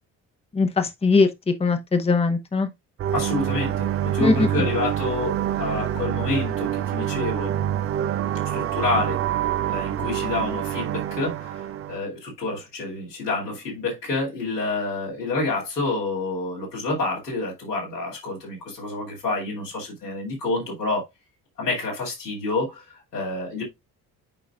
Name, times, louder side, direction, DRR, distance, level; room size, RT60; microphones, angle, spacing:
voice 1, 0.5-2.7 4.2-4.7, left 4 dB, 15° left, 0.9 m, -21 dB
sound 1, 3.0-12.0, right 11 dB, 30° right, 0.5 m, -26 dB
voice 2, 3.1-7.5 8.4-9.2 9.7-11.6 11.9-21.1 21.6-22.8 23.1-23.6, left 3 dB, 85° left, 2.7 m, -28 dB
8.8 x 5.2 x 2.4 m
figure-of-eight pair, 45°, 47 cm